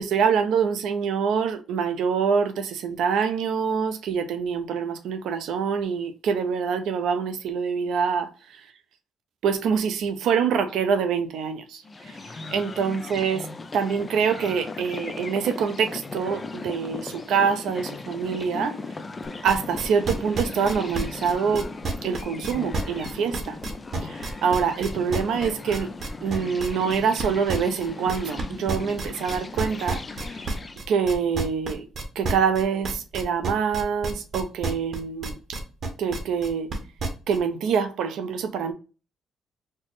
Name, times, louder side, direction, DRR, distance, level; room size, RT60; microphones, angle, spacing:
voice 1, 0.0-8.7 9.4-13.5 13.7-18.8 19.4-21.7 22.0-23.6 24.0-25.9 26.2-30.4 30.9-31.9 32.2-35.6 36.0-36.7 37.3-38.7, right 6 dB, 80° right, 0.5 m, -25 dB
sound 1, 11.8-30.8, left 3 dB, 30° left, 0.4 m, -37 dB
sound 2, 19.2-37.4, right 3 dB, 55° right, 0.8 m, -30 dB
4.2 x 2.0 x 3.0 m
cardioid pair, 90°, 0 cm